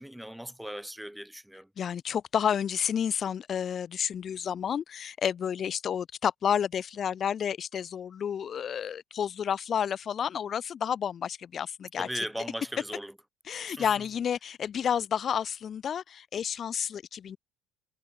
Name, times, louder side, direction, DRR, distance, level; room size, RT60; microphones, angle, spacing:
voice 1, 0.0-1.7 12.0-13.1 13.7-13.9, equal, 5° right, 2.0 m, -38 dB
voice 2, 1.8-12.1 13.5-17.4, left 8 dB, 45° left, 0.7 m, -30 dB
supercardioid pair, 85°, 0 cm